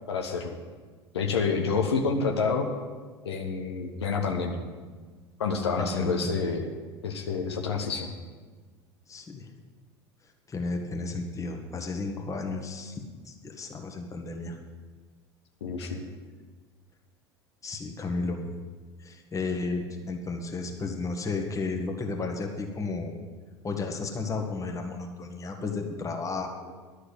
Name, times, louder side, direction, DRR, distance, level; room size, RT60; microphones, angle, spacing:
voice 1, 0.1-0.5 1.1-2.7 3.2-4.6 5.4-6.7 7.0-8.1 15.6-16.0, left 5 dB, 75° left, 2 dB, 1.1 m, -28 dB
voice 2, 5.8-6.4 9.1-9.5 10.5-12.9 13.2-14.6 17.6-18.4 19.0-23.1 23.6-26.7, left 3 dB, 25° left, 3 dB, 1.6 m, -33 dB
11.5 x 6.6 x 8.2 m, 1.4 s
figure-of-eight pair, 70°, 14 cm